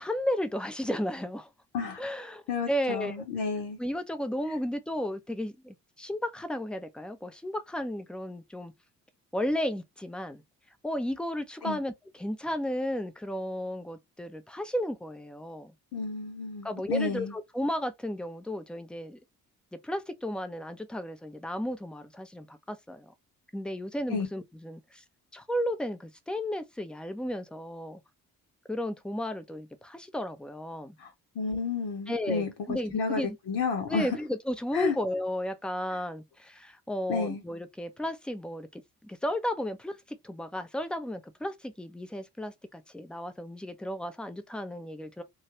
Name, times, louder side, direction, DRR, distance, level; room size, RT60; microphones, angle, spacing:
voice 1, 0.0-1.5 2.0-3.2 3.8-8.7 9.3-10.4 10.8-15.7 16.6-19.2 19.7-23.1 23.5-25.0 25.3-28.0 28.7-31.0 32.1-33.4 33.9-45.2, equal, ahead, 0.6 m, -34 dB
voice 2, 2.5-3.8 11.6-11.8 15.9-17.3 24.1-24.3 31.0-33.2 33.5-34.1 34.7-35.0 37.1-37.4, left 4 dB, 60° left, 0.9 m, -31 dB
3.0 x 2.4 x 2.9 m
figure-of-eight pair, 45°, 45 cm